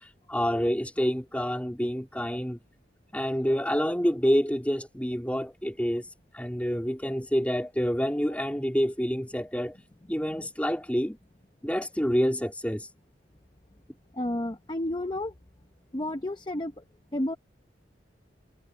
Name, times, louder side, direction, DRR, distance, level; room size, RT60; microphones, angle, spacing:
voice 1, 0.3-2.6 3.1-6.1 6.3-9.8 10.1-11.2 11.6-12.9, equal, 10° left, 3.2 m, -27 dB
voice 2, 14.1-15.3 15.9-16.7 17.1-17.4, left 1 dB, 25° left, 0.8 m, -31 dB
head